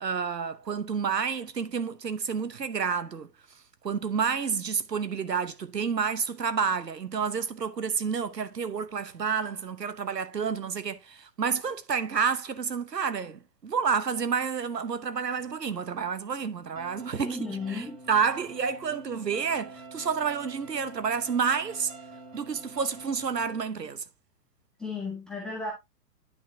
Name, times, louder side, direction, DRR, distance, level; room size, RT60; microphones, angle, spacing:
voice 1, 0.0-3.3 3.8-17.4 17.7-21.9 22.3-24.0, right 6 dB, 90° right, 1.0 m, -29 dB
sound 1, 16.8-23.6, right 2 dB, 55° right, 2.9 m, -46 dB
voice 2, 17.1-18.0 24.8-25.7, left 3 dB, ahead, 0.4 m, -34 dB
9.5 x 5.6 x 2.7 m
figure-of-eight pair, 120°, 48 cm